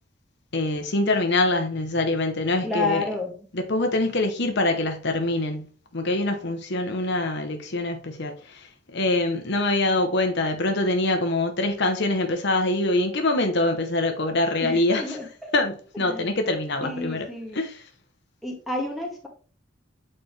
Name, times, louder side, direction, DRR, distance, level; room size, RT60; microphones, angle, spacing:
voice 1, 0.5-3.0 3.5-15.2 15.5-17.3 17.5-17.8, left 2 dB, 60° left, 0.9 m, -24 dB
voice 2, 2.6-3.4 14.6-15.5 16.0-16.3 16.8-17.6 18.4-19.3, left 2 dB, ahead, 2.1 m, -30 dB
8.5 x 4.3 x 3.3 m
head